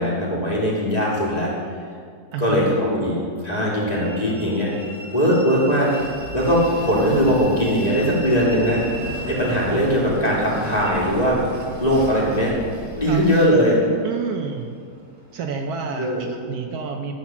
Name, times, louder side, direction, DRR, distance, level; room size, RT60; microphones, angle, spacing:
voice 1, 0.0-1.5 2.4-3.2 3.4-4.7 5.1-5.9 6.3-8.8 9.3-11.4 11.8-12.5 13.0-13.8 16.0-16.2, equal, 25° left, -5 dB, 2.2 m, -20 dB
voice 2, 2.3-2.7 13.1-13.2 14.0-14.7 15.3-17.1, right 5 dB, 70° right, 4 dB, 1.1 m, -29 dB
Train, 3.9-16.4, equal, 10° right, 1.4 m, -37 dB
sound 1, 6.0-13.5, left 1 dB, 65° left, 1.6 m, -40 dB
sound 2, 7.1-13.3, equal, 50° right, 1.9 m, -37 dB
13.0 x 4.4 x 7.1 m, 2.1 s
omnidirectional pair, 1.8 m